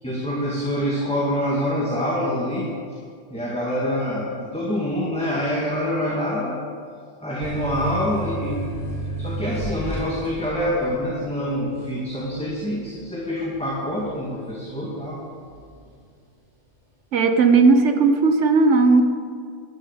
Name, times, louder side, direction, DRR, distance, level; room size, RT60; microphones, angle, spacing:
voice 1, 0.0-2.7 3.3-6.5 7.2-8.6 9.2-15.2, equal, 5° left, -6 dB, 1.8 m, -26 dB
sound 1, 7.4-14.7 15.1-15.8, right 1 dB, 45° right, 3.7 m, -32 dB
voice 2, 17.1-19.0, right 4 dB, 80° right, 7 dB, 1.3 m, -16 dB
12.0 x 6.8 x 8.0 m, 2.1 s
omnidirectional pair, 1.2 m